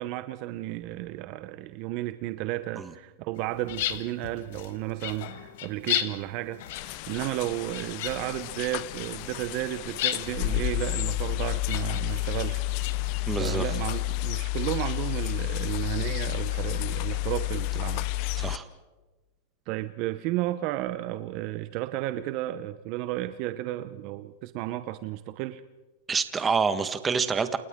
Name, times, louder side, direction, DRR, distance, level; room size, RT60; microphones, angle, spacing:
voice 1, 0.0-12.6 13.4-18.4 19.7-25.6, right 15 dB, 50° right, 12 dB, 0.8 m, -33 dB
sound 1, 3.4-13.1, left 12 dB, 65° left, 1.5 m, -36 dB
sound 2, 6.7-18.6, left 17 dB, 50° left, 0.7 m, -30 dB
voice 2, 13.3-13.6 18.4-18.6 26.1-27.6, right 5 dB, 15° right, 10 dB, 1.5 m, -27 dB
29.0 x 29.0 x 3.7 m, 1.2 s
supercardioid pair, 135°, 0 cm